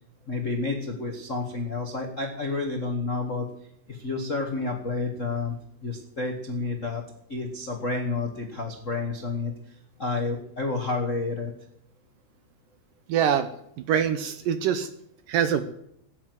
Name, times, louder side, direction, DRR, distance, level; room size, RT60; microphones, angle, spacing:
voice 1, 0.3-3.5 3.9-5.5 5.8-7.0 7.3-9.5 10.0-11.5, left 3 dB, 65° left, 3 dB, 0.7 m, -30 dB
voice 2, 13.1-13.5 13.9-14.9 15.3-15.7, right 8 dB, 75° right, 11 dB, 2.1 m, -24 dB
15.5 x 9.8 x 8.0 m, 0.72 s
omnidirectional pair, 4.6 m